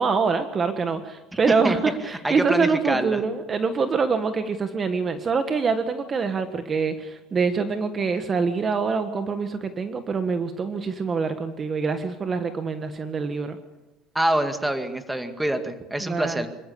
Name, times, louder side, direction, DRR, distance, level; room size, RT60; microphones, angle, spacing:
voice 1, 0.0-13.6 16.0-16.5, right 5 dB, 30° right, 8 dB, 1.5 m, -25 dB
voice 2, 2.2-3.2 14.1-16.5, right 1 dB, 5° right, 7 dB, 2.1 m, -25 dB
26.0 x 14.0 x 8.5 m, 1.1 s
supercardioid pair, 115°, 0 cm